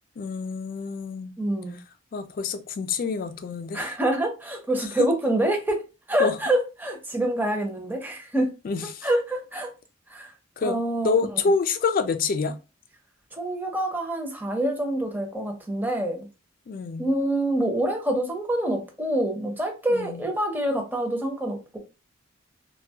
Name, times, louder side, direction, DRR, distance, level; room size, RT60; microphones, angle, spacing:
voice 1, 0.2-1.3 2.1-3.9 6.2-6.4 8.6-9.1 10.6-10.8 11.0-12.5 16.7-17.0 19.9-20.2, left 4 dB, 45° left, 0.3 m, -27 dB
voice 2, 1.4-1.8 3.7-8.5 9.0-9.7 10.1-10.3 10.6-11.5 13.3-16.3 17.0-21.8, right 1 dB, 10° right, 0.6 m, -26 dB
2.6 x 2.2 x 2.7 m
head